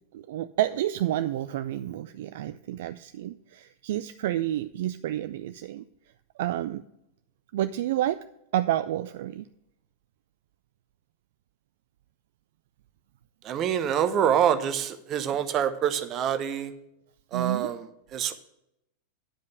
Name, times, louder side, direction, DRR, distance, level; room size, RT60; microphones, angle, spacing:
voice 1, 0.1-5.8 6.4-6.8 7.5-8.2 8.5-9.5 17.3-17.7, right 13 dB, 55° right, 12 dB, 0.3 m, -29 dB
voice 2, 13.4-16.7 17.3-17.8 18.1-18.3, right 9 dB, 30° right, 10 dB, 0.8 m, -26 dB
10.0 x 5.2 x 6.5 m, 0.82 s
figure-of-eight pair, 90°, 0 cm